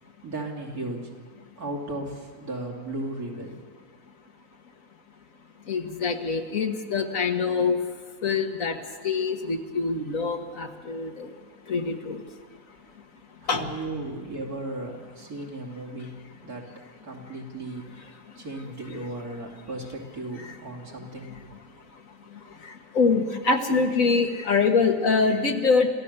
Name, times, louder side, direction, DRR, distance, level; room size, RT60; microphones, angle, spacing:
voice 1, 0.2-1.1 1.6-3.6 13.4-16.2 16.4-16.7 17.0-21.3, right 2 dB, 85° right, -1 dB, 3.6 m, -35 dB
voice 2, 5.7-7.8 8.2-8.8 9.0-11.3 11.7-12.2 13.5-13.6 18.9-19.1 20.4-20.5 22.9-25.9, left 4 dB, 65° left, 4 dB, 1.9 m, -24 dB
27.0 x 15.5 x 6.8 m, 1.6 s
omnidirectional pair, 1.5 m